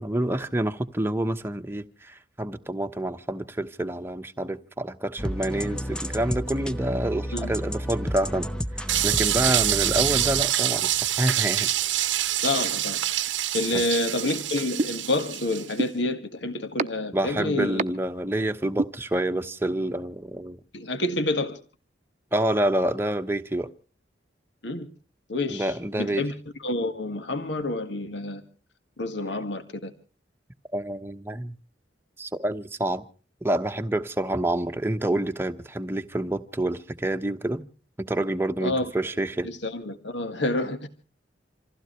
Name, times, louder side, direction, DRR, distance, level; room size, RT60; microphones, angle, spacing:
voice 1, 0.0-8.5 8.7-10.9 11.2-11.7 13.7-13.8 17.1-20.6 22.3-23.7 25.5-26.3 30.7-31.5 32.2-33.0 33.4-37.6 38.0-39.5, right 1 dB, 10° right, 1.0 m, -28 dB
sound 1, 5.2-10.4, equal, 5° left, 0.7 m, -32 dB
sound 2, 8.9-15.7, right 13 dB, 85° right, 0.9 m, -26 dB
voice 2, 12.4-13.0 13.5-17.8 20.7-21.6 24.6-24.9 25.3-26.3 26.6-28.4 29.0-29.9 38.6-38.9 39.4-40.9, left 2 dB, 70° left, 1.8 m, -28 dB
sound 3, 14.8-14.9 15.8-15.9 16.8-16.9 17.8-17.9 18.8-18.9, right 2 dB, 35° right, 0.8 m, -23 dB
27.0 x 15.5 x 3.2 m
head